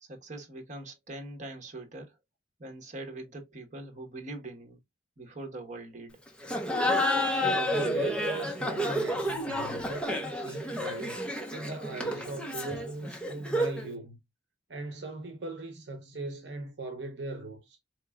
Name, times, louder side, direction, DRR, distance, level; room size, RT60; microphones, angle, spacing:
voice 1, 0.0-2.2 2.6-4.8 5.2-6.2, right 2 dB, 40° right, 1.2 m, -42 dB
Laughter, 6.4-13.9, left 1 dB, 5° left, 0.7 m, -30 dB
voice 2, 7.4-11.2 11.5-14.2 14.7-17.8, right 2 dB, 70° right, 0.8 m, -39 dB
4.4 x 2.9 x 2.3 m
head